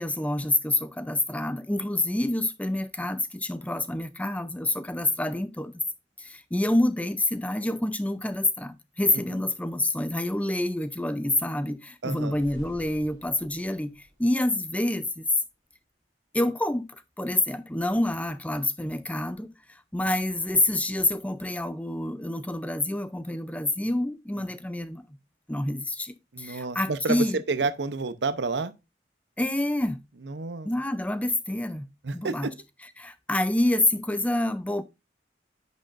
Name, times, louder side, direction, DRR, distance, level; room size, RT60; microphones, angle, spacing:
voice 1, 0.0-5.7 6.2-13.9 14.2-15.2 16.3-16.9 17.2-19.5 19.9-25.1 25.5-27.4 29.4-30.0 30.6-31.9 32.1-32.5 33.0-34.8, left 1 dB, 10° left, 0.6 m, -27 dB
voice 2, 9.1-9.4 12.0-12.4 24.4-24.5 26.3-28.7 30.2-30.7 32.0-32.5, right 3 dB, 85° right, 0.7 m, -30 dB
sound 1, 12.1-15.1, equal, 30° right, 3.8 m, -50 dB
9.9 x 6.3 x 2.5 m
head